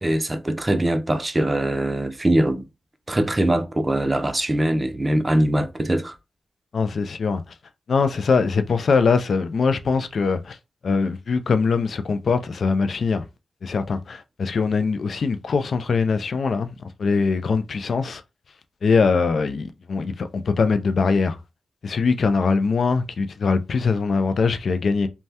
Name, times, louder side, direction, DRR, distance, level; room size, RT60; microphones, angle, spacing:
voice 1, 0.0-2.6 3.1-6.1, right 1 dB, 25° right, 0.5 m, -22 dB
voice 2, 6.7-7.4 7.9-10.6 10.8-13.2 13.6-16.7 17.0-18.2 18.8-21.4 21.8-25.1, left 4 dB, 65° left, 0.3 m, -22 dB
3.2 x 2.2 x 2.7 m
cardioid pair, 70°, 0 cm